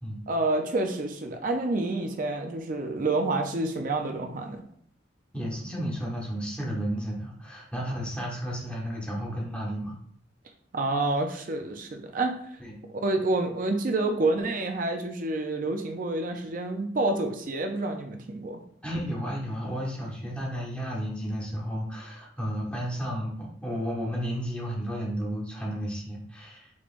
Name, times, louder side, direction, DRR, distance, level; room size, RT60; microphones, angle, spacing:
voice 1, 0.3-4.6 10.7-12.3 12.9-18.6, right 2 dB, 45° right, 5 dB, 0.5 m, -28 dB
voice 2, 5.3-10.0 12.6-12.8 18.8-26.8, equal, 5° left, -4 dB, 1.1 m, -33 dB
5.2 x 3.2 x 2.5 m, 0.63 s
head